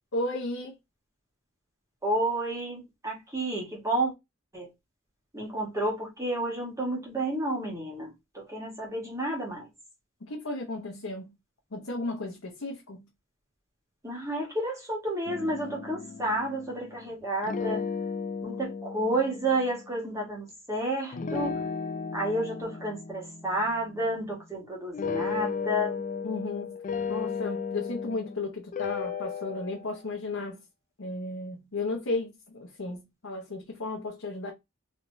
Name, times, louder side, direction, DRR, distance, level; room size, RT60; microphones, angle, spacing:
voice 1, 0.1-0.7 10.2-11.3 11.7-13.1 26.2-26.7 27.1-30.6 31.0-34.5, left 2 dB, 70° left, 0.9 m, -34 dB
voice 2, 2.0-4.1 4.5-4.7 5.3-9.7 14.0-17.8 18.4-21.6 22.1-26.0, right 1 dB, 15° right, 1.5 m, -31 dB
sound 1, 15.2-17.1 17.4-19.9 21.1-24.5 24.9-28.4 28.7-30.0, left 5 dB, 40° left, 0.3 m, -35 dB
3.4 x 3.1 x 2.6 m
head